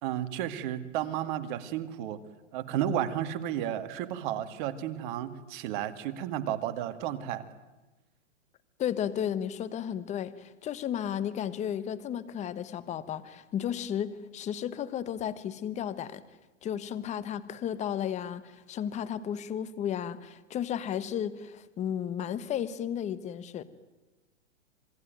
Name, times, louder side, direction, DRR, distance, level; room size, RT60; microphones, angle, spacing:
voice 1, 0.0-2.2 2.5-7.4, right 11 dB, 40° right, 11 dB, 2.2 m, -32 dB
voice 2, 8.8-16.2 16.6-23.6, left 9 dB, 20° left, 15 dB, 1.3 m, -33 dB
27.0 x 21.0 x 9.2 m, 1.1 s
hypercardioid pair, 140°, 37 cm